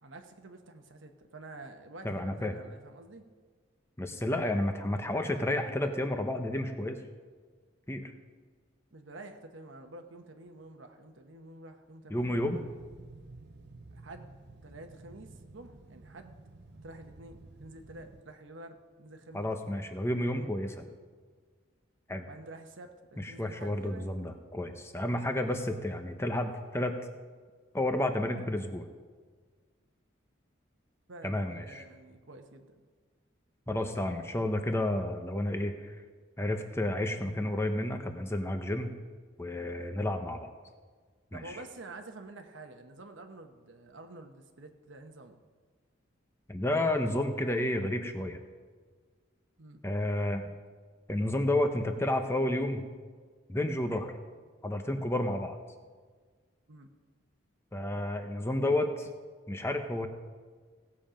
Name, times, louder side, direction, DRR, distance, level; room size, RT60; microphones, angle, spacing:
voice 1, 0.0-3.2 8.9-12.6 13.9-14.3 14.6-16.4 16.8-19.5 20.1-20.5 22.3-24.1 31.1-32.8 41.3-45.4 49.6-49.8 56.7-56.9, right 2 dB, 80° right, 5 dB, 1.1 m, -49 dB
voice 2, 2.0-2.5 4.0-7.0 7.9-8.1 12.1-12.6 19.3-20.7 22.1-22.3 23.2-27.0 27.7-28.9 31.2-31.8 33.7-35.9 36.4-38.9 39.4-40.5 41.3-41.6 46.5-48.4 49.8-50.5 51.1-52.8 53.5-54.1 54.6-55.6 57.7-59.1 59.5-60.1, left 1 dB, 15° left, 6 dB, 0.8 m, -31 dB
sound 1, 12.2-18.2, right 2 dB, 55° right, 0.7 m, -52 dB
17.0 x 7.4 x 5.1 m, 1.5 s
head